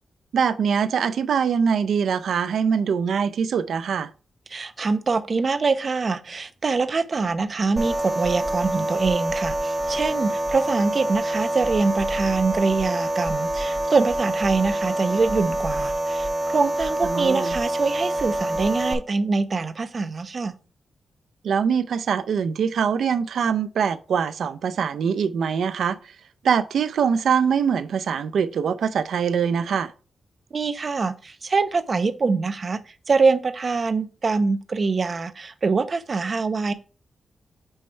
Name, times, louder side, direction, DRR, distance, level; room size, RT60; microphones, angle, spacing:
voice 1, 0.3-4.1 17.0-17.5 21.4-26.0 26.4-29.9, right 7 dB, 90° right, 0.5 m, -23 dB
voice 2, 4.5-20.5 30.5-32.8 33.1-36.7, right 4 dB, 45° right, 0.7 m, -24 dB
sound 1, 7.8-18.9, right 1 dB, 20° right, 1.2 m, -26 dB
8.8 x 3.2 x 4.4 m
wide cardioid pair, 105°, 0 cm